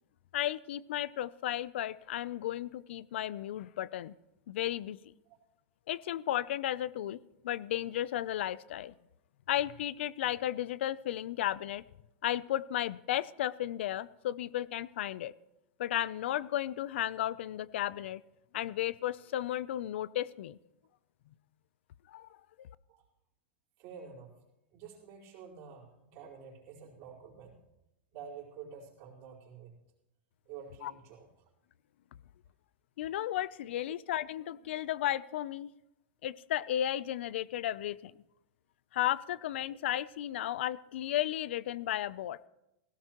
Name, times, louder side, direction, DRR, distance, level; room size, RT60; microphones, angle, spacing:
voice 1, 0.3-4.1 4.5-5.0 5.9-8.9 9.5-11.8 12.2-15.3 15.8-18.2 18.5-20.6 22.1-22.7 30.8-30.9 33.0-35.7 36.2-38.1 38.9-42.4, left 12 dB, 80° left, 19 dB, 0.5 m, -34 dB
voice 2, 23.8-24.4 24.7-27.6 28.1-29.7 30.4-31.4 39.7-39.8, right 6 dB, 45° right, -4 dB, 4.4 m, -49 dB
17.5 x 16.5 x 3.0 m, 0.91 s
supercardioid pair, 155°, 6 cm